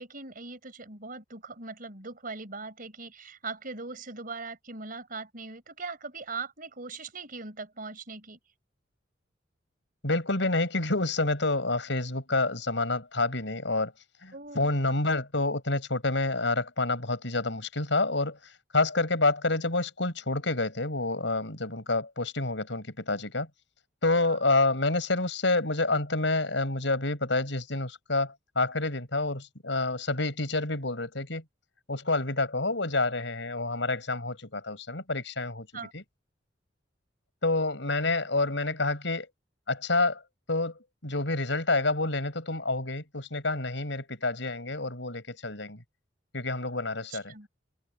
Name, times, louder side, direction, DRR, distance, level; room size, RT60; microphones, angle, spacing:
voice 1, 0.0-8.4 14.3-14.7 24.3-24.4 35.7-35.9 47.1-47.5, right 4 dB, 50° right, 4.7 m, -40 dB
voice 2, 10.0-13.9 14.2-23.5 24.0-31.4 31.9-35.7 35.9-36.0 37.4-39.3 39.7-40.2 40.5-40.7 41.0-45.8 46.3-47.3, left 2 dB, 75° left, 6.0 m, -28 dB
head